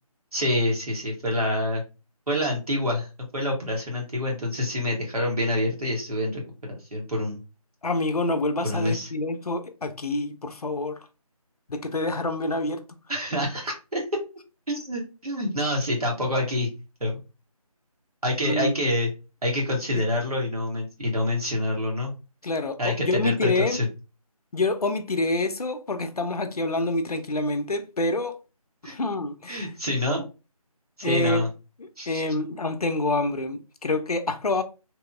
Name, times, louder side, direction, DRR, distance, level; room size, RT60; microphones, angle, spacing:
voice 1, 0.3-1.8 2.3-3.1 3.3-7.4 8.6-9.1 13.1-14.0 14.7-16.7 17.0-17.2 18.2-19.1 19.4-22.1 22.8-23.9 28.8-28.9 29.5-30.2 31.0-31.5 32.0-32.2, left 1 dB, 80° right, 0.9 m, -27 dB
voice 2, 7.8-11.0 11.7-12.8 18.4-18.9 22.4-23.8 24.5-28.4 28.8-29.7 31.0-31.4 32.1-34.6, left 2 dB, 75° left, 0.5 m, -27 dB
2.9 x 2.0 x 2.3 m
figure-of-eight pair, 160°, 19 cm